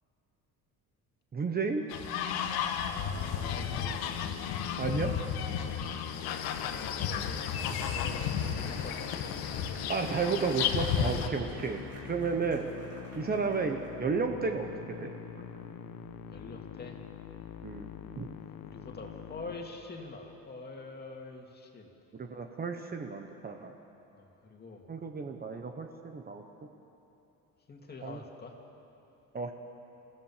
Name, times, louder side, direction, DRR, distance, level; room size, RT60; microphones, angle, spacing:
voice 1, 1.3-1.8 4.8-5.1 5.7-5.8 9.9-12.7 13.1-15.1 17.6-17.9 18.2-18.3 22.1-23.7 24.9-26.4 28.0-28.2 29.3-29.5, right 5 dB, 25° right, 4 dB, 1.1 m, -32 dB
sound 1, 1.9-11.3, left 8 dB, 80° left, 1.5 m, -33 dB
voice 2, 2.8-4.1 5.6-5.9 6.6-9.7 11.4-11.5 16.3-17.0 18.6-21.9 24.1-24.8 27.7-28.5, left 3 dB, 25° left, 2 dB, 2.3 m, -46 dB
Musical instrument, 3.1-20.3, left 9 dB, 65° left, 1.1 m, -44 dB
sound 2, 7.4-14.2, right 2 dB, 40° right, 4.3 m, -54 dB
28.0 x 15.5 x 7.4 m, 2.9 s
cardioid pair, 155°, 36 cm